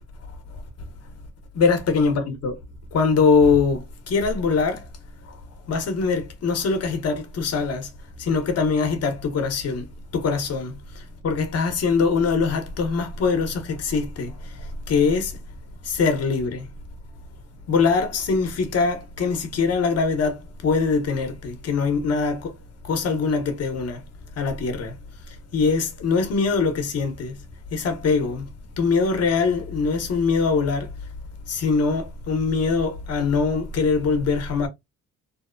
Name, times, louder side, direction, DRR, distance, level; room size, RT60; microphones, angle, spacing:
voice 1, 1.5-2.6 2.9-4.9 5.7-7.9 8.2-9.9 10.1-15.3 15.8-16.7 17.7-22.5 22.8-24.0 24.4-25.0 25.5-27.4 27.7-28.5 28.8-30.9 31.5-34.7, left 4 dB, 55° left, 0.9 m, -23 dB
2.7 x 2.0 x 2.4 m
cardioid pair, 90°, 30 cm